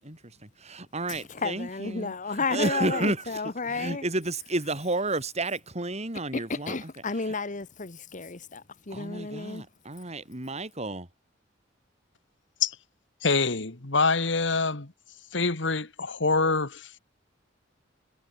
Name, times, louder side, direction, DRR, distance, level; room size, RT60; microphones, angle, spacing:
voice 1, 0.0-3.4 3.7-6.9 7.2-7.3 8.9-11.1, right 2 dB, 35° right, 3.9 m, -32 dB
voice 2, 1.1-4.0 6.3-9.6, left 4 dB, 40° left, 1.3 m, -32 dB
voice 3, 13.2-14.9 15.3-17.0, left 4 dB, 70° left, 2.1 m, -25 dB
head